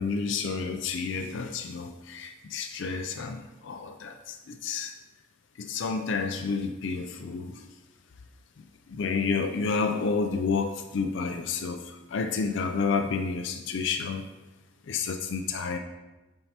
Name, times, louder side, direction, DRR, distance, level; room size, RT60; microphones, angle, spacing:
voice 1, 0.0-4.9 5.6-7.7 8.9-14.2 14.9-15.8, left 4 dB, 65° left, 6 dB, 0.4 m, -30 dB
8.8 x 4.5 x 2.8 m, 1.1 s
head